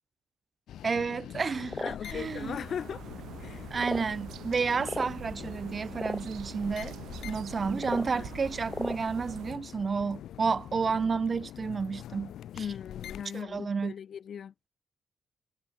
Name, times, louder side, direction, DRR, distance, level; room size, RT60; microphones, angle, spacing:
sound 1, 0.7-13.4, left 11 dB, 80° left, 3.7 m, -44 dB
voice 1, 0.8-2.6 3.7-7.0 7.2-12.7 13.3-13.9, right 5 dB, 30° right, 0.7 m, -31 dB
sound 2, 1.7-2.0 2.8-2.9 3.8-4.1 4.8-5.1 6.0-6.2 7.8-8.1 8.7-9.0, left 2 dB, 10° left, 0.4 m, -35 dB
voice 2, 1.8-3.0 3.4-3.7 8.1-8.3 12.6-14.5, left 8 dB, 50° left, 3.6 m, -38 dB
sound 3, 2.1-9.6, right 11 dB, 70° right, 6.4 m, -45 dB
wide cardioid pair, 165°, 0 cm